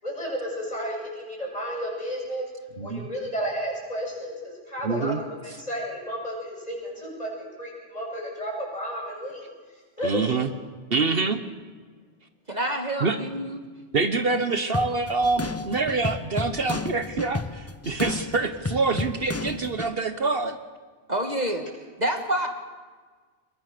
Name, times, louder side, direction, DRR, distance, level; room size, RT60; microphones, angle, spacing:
voice 1, 0.0-2.5 2.8-5.1 5.4-9.5 10.0-10.3, equal, 35° left, -2 dB, 8.2 m, -32 dB
voice 2, 2.8-3.1 4.8-5.2 10.0-10.5 10.9-11.4 13.0-13.2 13.9-20.6, right 3 dB, 60° right, 9 dB, 1.4 m, -25 dB
voice 3, 12.5-13.6 21.1-21.6 22.0-22.5, right 1 dB, 40° right, 4 dB, 1.8 m, -27 dB
sound 1, 14.7-19.9, left 3 dB, 15° left, 0.6 m, -32 dB
27.0 x 22.0 x 6.8 m, 1.5 s
omnidirectional pair, 1.1 m